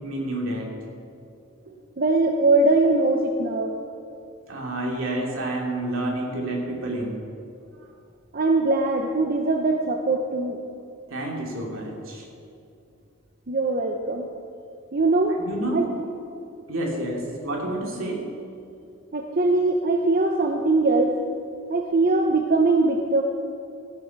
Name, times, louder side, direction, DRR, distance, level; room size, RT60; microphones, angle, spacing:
voice 1, 0.0-0.7 1.7-1.8 4.5-7.2 11.1-12.2 15.4-15.9 16.7-18.3, right 1 dB, 75° right, -1 dB, 2.7 m, -29 dB
voice 2, 2.0-3.8 8.3-10.6 13.5-14.3 14.9-15.4 15.7-15.9 19.1-21.2 21.7-23.2, right 2 dB, 45° right, 3 dB, 0.8 m, -21 dB
15.0 x 8.9 x 6.0 m, 2.5 s
head